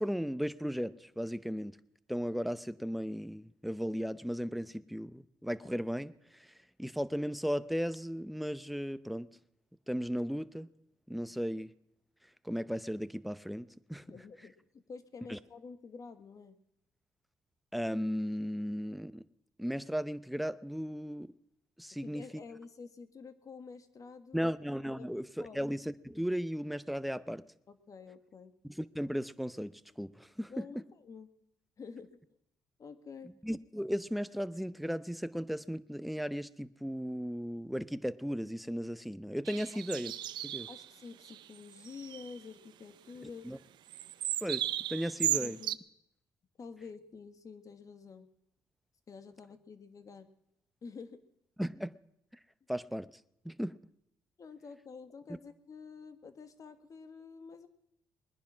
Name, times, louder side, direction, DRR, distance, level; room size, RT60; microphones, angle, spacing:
voice 1, 0.0-1.8 2.1-6.5 6.8-9.3 9.9-10.7 11.1-11.7 12.4-14.0 15.3-15.4 17.7-19.2 19.6-21.3 21.8-22.3 24.3-27.4 28.6-30.7 33.4-40.1 40.4-40.7 43.4-43.6 44.4-45.6 51.6-52.0 52.7-53.1 53.4-53.8, equal, ahead, 0.7 m, -36 dB
voice 2, 14.0-16.6 22.0-24.5 25.0-25.1 25.4-25.6 27.7-28.5 30.5-31.3 31.8-32.2 32.8-33.3 39.7-39.8 40.7-43.5 45.3-45.8 46.6-48.3 49.1-50.3 50.8-51.2 54.4-57.7, left 5 dB, 45° left, 1.6 m, -49 dB
sound 1, 39.5-40.9 41.2-41.4 41.7-42.4 43.9-45.8, right 12 dB, 75° right, 0.5 m, -35 dB
21.0 x 10.5 x 6.1 m
cardioid pair, 75°, 8 cm